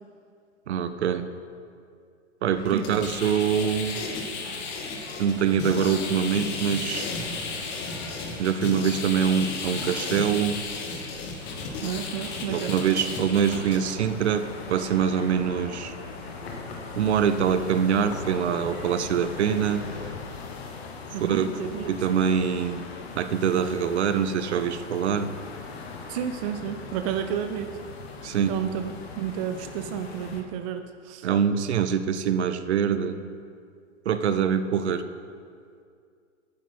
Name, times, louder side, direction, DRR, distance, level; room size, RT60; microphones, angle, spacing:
voice 1, 0.7-1.3 2.4-4.0 5.2-7.1 8.4-10.7 12.5-15.9 17.0-19.8 21.2-21.5 21.9-22.9 23.1-25.4 28.2-28.6 31.2-33.2 34.1-35.0, right 8 dB, 60° right, 11 dB, 0.8 m, -24 dB
sound 1, 2.5-20.1, left 2 dB, 70° left, 2.9 m, -43 dB
sound 2, 2.7-13.8, left 4 dB, 30° left, 1.3 m, -34 dB
sound 3, 11.4-30.4, left 4 dB, 55° left, 1.3 m, -40 dB
voice 2, 11.8-12.8 21.1-21.9 26.1-27.7 28.5-31.3, right 9 dB, 30° right, 8 dB, 0.4 m, -31 dB
8.9 x 7.4 x 5.6 m, 2.3 s
figure-of-eight pair, 110°, 37 cm